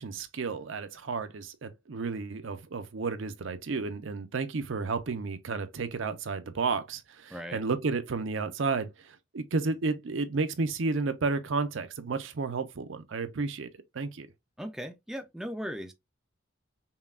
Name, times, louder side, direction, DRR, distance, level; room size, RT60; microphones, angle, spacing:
voice 1, 0.0-13.7 13.9-14.3, right 4 dB, 70° right, 0.6 m, -32 dB
voice 2, 7.3-7.6 14.6-15.9, equal, ahead, 0.4 m, -37 dB
5.5 x 2.3 x 2.3 m
head